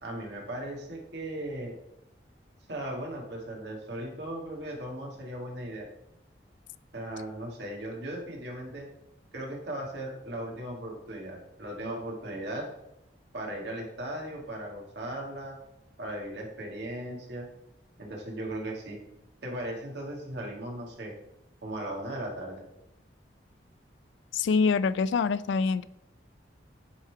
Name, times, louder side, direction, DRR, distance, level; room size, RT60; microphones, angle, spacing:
voice 1, 0.0-1.7 2.7-5.9 6.9-8.9 9.3-12.7 13.3-15.6 16.0-17.5 18.0-19.0 19.4-21.1 21.6-22.6, right 1 dB, 65° right, 1.8 m, -37 dB
voice 2, 24.3-25.9, left 5 dB, 75° left, 0.3 m, -25 dB
9.8 x 3.7 x 4.6 m
head